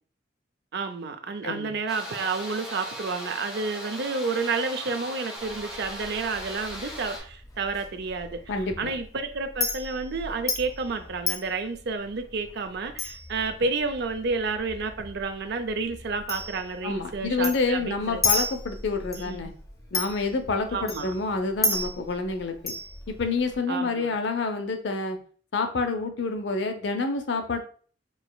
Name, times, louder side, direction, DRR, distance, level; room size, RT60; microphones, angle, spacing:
voice 1, 0.7-8.4 8.8-18.2 19.2-19.5 20.7-21.1 23.7-24.1, right 4 dB, 65° right, 8 dB, 0.5 m, -30 dB
sound 1, 1.9-7.2, equal, 5° right, 1.8 m, -38 dB
Chink clink, 5.4-23.6, left 3 dB, 20° left, 0.7 m, -35 dB
voice 2, 8.5-8.9 16.8-19.5 19.9-22.7 23.1-25.2 25.5-27.6, left 3 dB, 75° left, 6 dB, 0.6 m, -28 dB
4.7 x 2.9 x 2.3 m, 0.43 s
head